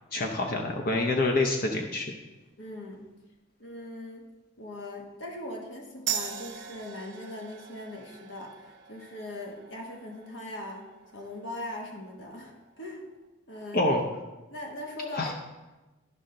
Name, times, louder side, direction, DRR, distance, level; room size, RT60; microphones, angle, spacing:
voice 1, 0.1-2.1 13.7-14.0 15.2-15.3, left 2 dB, 50° left, 2 dB, 0.7 m, -26 dB
voice 2, 2.6-3.0 3.6-4.2 4.6-13.1 13.5-13.9 14.5-15.3, left 1 dB, 65° left, 0 dB, 1.2 m, -40 dB
sound 1, 6.1-13.2, right 9 dB, 60° right, 0.8 m, -41 dB
12.5 x 5.5 x 3.8 m, 1.1 s
head